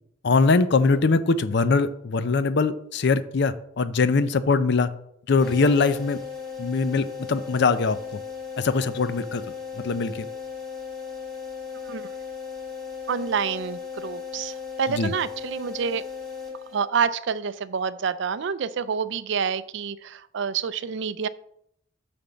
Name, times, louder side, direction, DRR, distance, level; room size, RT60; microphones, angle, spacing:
voice 1, 0.2-4.9 5.3-6.2 6.6-8.2 8.6-9.4 9.8-10.3 14.9-15.1, left 4 dB, 60° left, 13 dB, 0.5 m, -22 dB
sound 1, 5.4-17.1, left 6 dB, 5° left, 2.6 m, -36 dB
voice 2, 13.1-16.0 16.7-21.3, right 6 dB, 65° right, 15 dB, 0.4 m, -28 dB
9.0 x 3.6 x 6.8 m, 0.73 s
head